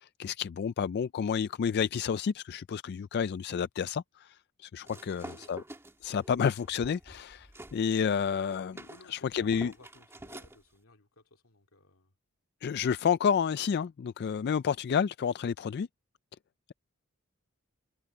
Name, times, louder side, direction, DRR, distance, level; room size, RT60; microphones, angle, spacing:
voice 1, 0.0-4.3 4.6-5.6 6.0-8.8 9.1-9.7 12.6-15.9, left 7 dB, 50° left, 0.3 m, -30 dB
sound 1, 4.8-7.8 8.1-10.6, right 1 dB, 10° right, 2.3 m, -48 dB
voice 2, 4.9-5.5 8.9-12.1, left 2 dB, 80° left, 2.7 m, -58 dB
head